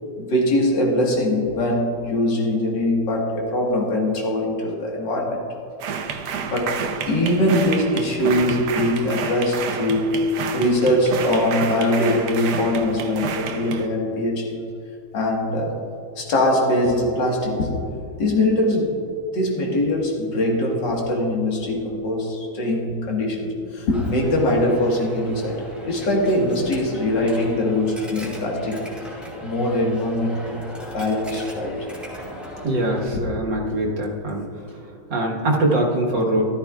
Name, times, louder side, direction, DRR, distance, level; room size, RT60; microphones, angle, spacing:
voice 1, 0.2-5.4 6.4-6.7 7.0-14.6 15.1-15.8 16.2-17.8 18.2-19.0 19.3-28.9 29.4-30.6 30.9-31.9 33.1-33.2, left 1 dB, 80° left, -2 dB, 2.4 m, -22 dB
sound 1, 5.8-13.9, right 6 dB, 70° right, 1.3 m, -30 dB
Coin (dropping), 23.9-33.1, equal, ahead, 1.8 m, -38 dB
voice 2, 32.6-34.5 35.1-36.4, right 1 dB, 90° right, -2 dB, 2.2 m, -22 dB
14.0 x 12.5 x 2.4 m, 2.7 s
omnidirectional pair, 1.9 m